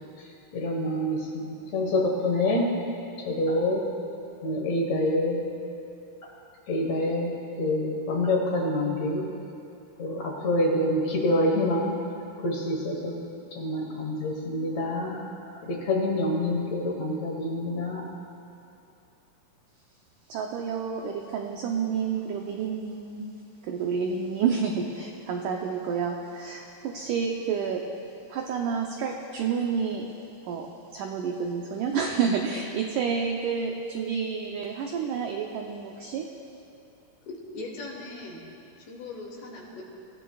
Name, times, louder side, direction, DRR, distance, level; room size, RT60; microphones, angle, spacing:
voice 1, 0.5-2.8 3.3-3.9 4.4-5.5 6.2-6.3 6.7-9.3 10.0-12.0 12.4-13.3 13.5-15.2 15.6-18.1, left 1 dB, 60° left, 0 dB, 2.1 m, -27 dB
voice 2, 20.3-23.3 23.6-27.9 28.3-30.1 30.4-36.3, right 6 dB, 85° right, 1 dB, 1.8 m, -29 dB
voice 3, 37.3-38.4 38.8-39.8, left 2 dB, 75° left, -2 dB, 4.1 m, -39 dB
24.5 x 15.5 x 2.4 m, 2.7 s
omnidirectional pair, 4.6 m